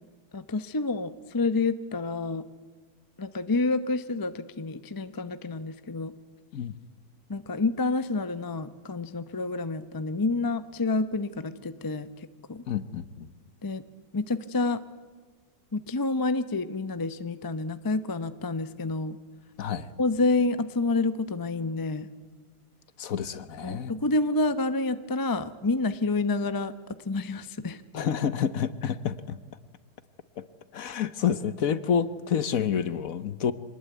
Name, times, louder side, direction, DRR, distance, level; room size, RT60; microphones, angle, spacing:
voice 1, 0.3-2.4 3.2-6.1 7.3-12.6 13.6-13.8 14.1-14.8 15.7-19.2 20.0-22.1 23.6-26.7 27.0-27.8, left 3 dB, 25° left, 13 dB, 0.5 m, -28 dB
voice 2, 12.7-13.3 19.6-19.9 23.0-23.9 27.9-29.4 30.4-30.5 30.7-33.5, left 8 dB, 60° left, 14 dB, 1.3 m, -28 dB
25.0 x 19.5 x 9.3 m, 1.5 s
omnidirectional pair, 1.8 m